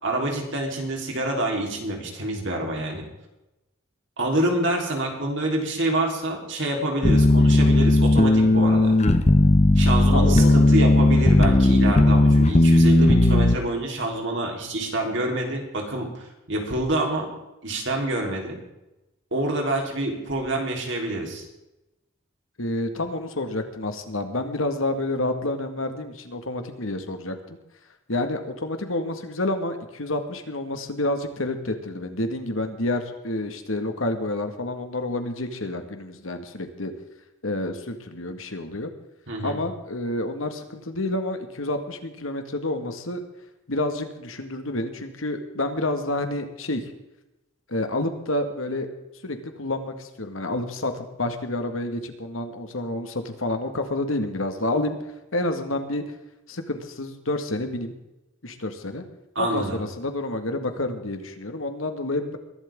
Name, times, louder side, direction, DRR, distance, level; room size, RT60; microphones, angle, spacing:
voice 1, 0.0-3.1 4.2-8.9 9.8-17.3 17.6-18.6 19.3-21.5 39.3-39.6 59.4-59.8, right 1 dB, 65° right, 1 dB, 3.7 m, -27 dB
sound 1, 7.0-13.6, left 1 dB, 35° left, 0.8 m, -16 dB
voice 2, 10.1-10.6 22.6-27.6 28.1-36.9 37.4-38.9 39.4-43.2 43.7-46.8 47.7-48.9 49.2-55.0 55.3-56.0 56.5-57.9 58.4-59.0 59.4-62.4, left 2 dB, 80° left, 7 dB, 1.8 m, -29 dB
22.0 x 12.0 x 3.7 m, 0.96 s
head